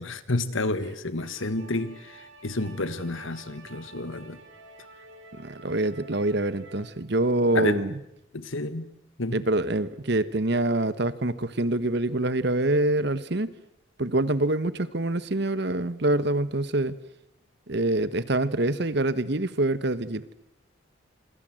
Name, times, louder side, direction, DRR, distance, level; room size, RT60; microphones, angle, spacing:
voice 1, 0.0-4.4 7.5-7.8 8.3-8.9 9.2-9.4, left 2 dB, 75° left, 1.7 m, -30 dB
sound 1, 1.2-6.9, right 2 dB, 70° right, 5.1 m, -50 dB
voice 2, 5.4-7.9 9.3-13.5 14.0-17.0 17.7-20.2, right 2 dB, 55° right, 1.2 m, -25 dB
27.0 x 25.0 x 7.8 m
head